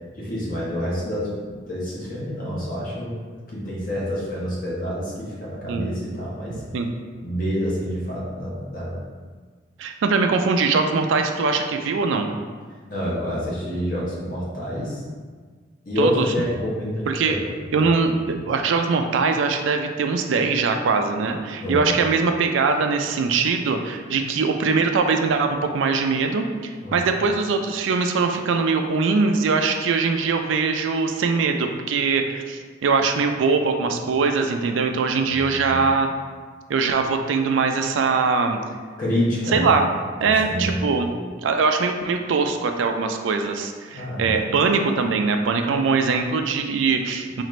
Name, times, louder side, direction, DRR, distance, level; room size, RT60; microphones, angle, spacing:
voice 1, 0.1-3.2 3.5-6.6 7.2-9.0 12.9-15.0 15.8-18.0 21.5-22.0 26.8-27.0 35.2-35.9 39.0-39.8 40.2-40.9 43.9-44.3, equal, 45° left, -6 dB, 1.0 m, -28 dB
voice 2, 9.8-12.3 16.0-16.3 17.1-17.4 17.7-36.1 36.7-38.6 39.5-39.8 40.2-41.1 41.4-47.4, right 4 dB, 80° right, 5 dB, 0.4 m, -22 dB
4.0 x 2.5 x 3.1 m, 1.5 s
head